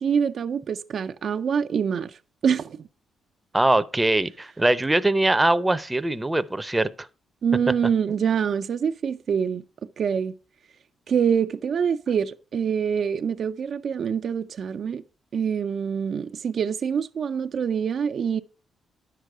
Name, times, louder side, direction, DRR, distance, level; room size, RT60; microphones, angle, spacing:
voice 1, 0.0-2.1 2.4-2.8 7.4-9.6 10.0-10.3 11.1-15.0 15.3-18.4, right 7 dB, 60° right, 0.5 m, -25 dB
voice 2, 3.5-6.9, right 2 dB, 15° right, 0.7 m, -22 dB
10.0 x 6.7 x 4.8 m
cardioid pair, 65°, 0 cm